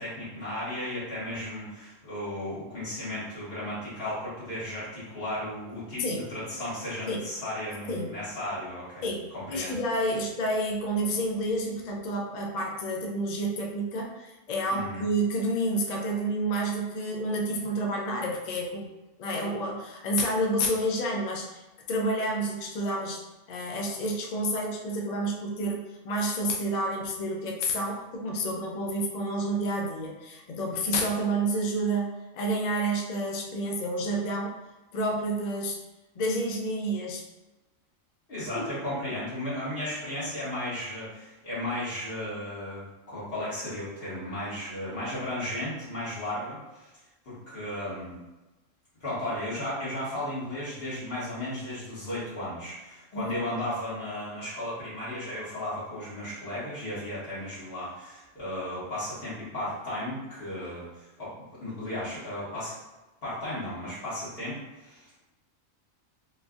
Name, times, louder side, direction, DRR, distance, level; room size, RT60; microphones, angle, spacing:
voice 1, 0.0-9.1 9.3-9.8 14.7-15.0 38.3-46.9 47.2-48.2 49.0-61.3 61.6-62.8 63.2-65.3, left 1 dB, 45° left, -10 dB, 1.7 m, -35 dB
voice 2, 9.0-18.9 19.2-21.6 21.9-34.6 34.9-35.8 36.2-37.2 38.6-38.7 53.1-53.3, right 1 dB, 75° left, 0 dB, 0.4 m, -29 dB
4.0 x 2.5 x 2.4 m, 1.1 s
omnidirectional pair, 1.4 m